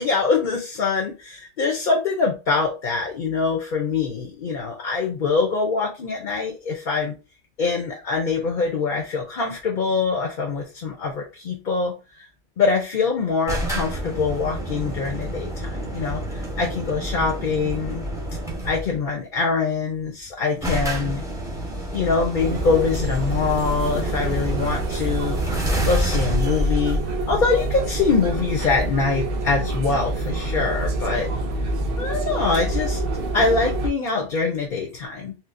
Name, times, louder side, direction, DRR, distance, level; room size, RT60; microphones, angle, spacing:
voice 1, 0.0-7.1 7.6-12.3 12.6-18.1 18.6-21.2 21.9-25.4 25.8-27.0 27.3-31.3 32.0-33.0 33.3-35.4, left 4 dB, 50° left, 2 dB, 0.7 m, -24 dB
sound 1, 13.5-19.0 20.0-20.1 20.3-20.4 20.6-28.1, equal, 5° right, 0.7 m, -28 dB
sound 2, 22.4-33.9, right 2 dB, 60° right, 0.7 m, -27 dB
4.3 x 2.0 x 2.5 m, 0.30 s
omnidirectional pair, 1.2 m